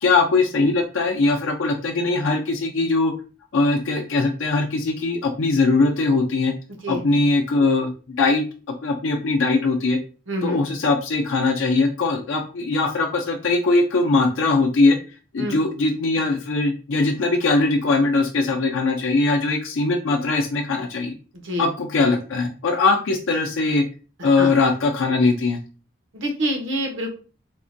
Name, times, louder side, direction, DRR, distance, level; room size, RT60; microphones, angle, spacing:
voice 1, 0.0-3.1 3.5-6.5 6.9-8.4 8.8-10.0 10.4-15.0 15.3-21.2 21.6-23.8 24.2-25.6, left 3 dB, 90° left, 1 dB, 0.4 m, -21 dB
voice 2, 10.3-10.6 15.4-15.6 21.4-21.7 24.4-24.5 26.1-27.1, equal, 85° right, 2 dB, 0.9 m, -26 dB
3.5 x 2.1 x 2.6 m, 0.36 s
head